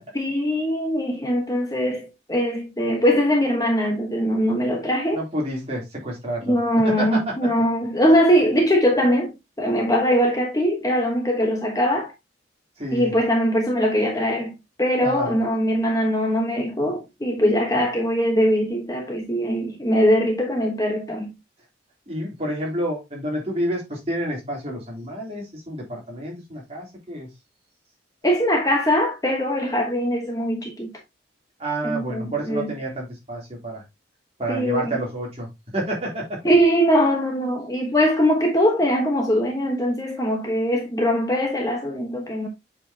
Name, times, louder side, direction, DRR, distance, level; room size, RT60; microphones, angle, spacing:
voice 1, 0.1-5.2 6.5-12.1 12.9-14.5 14.8-21.3 28.2-30.9 31.8-32.7 34.5-34.9 36.4-42.5, equal, 20° left, 1.1 m, -21 dB
voice 2, 5.1-6.6 6.8-7.3 12.8-13.1 15.0-15.4 22.1-27.3 31.6-33.8 34.4-35.5 35.7-36.4, right 1 dB, 30° right, 3.1 m, -29 dB
7.5 x 5.2 x 2.8 m
head